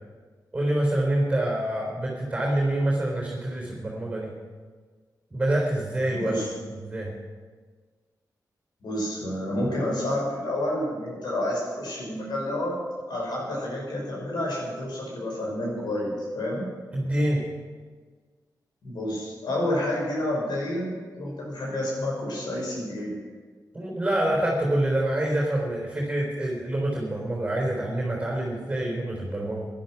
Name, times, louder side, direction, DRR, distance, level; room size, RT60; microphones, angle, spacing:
voice 1, 0.5-4.3 5.3-6.4 6.7-7.1 16.9-17.4 23.7-29.7, right 1 dB, 20° right, -2 dB, 3.8 m, -26 dB
voice 2, 6.1-6.5 8.8-12.7 13.1-16.7 18.8-23.2, left 1 dB, 80° left, -3 dB, 6.4 m, -29 dB
18.0 x 11.0 x 5.9 m, 1.5 s
wide cardioid pair, 150°, 7 cm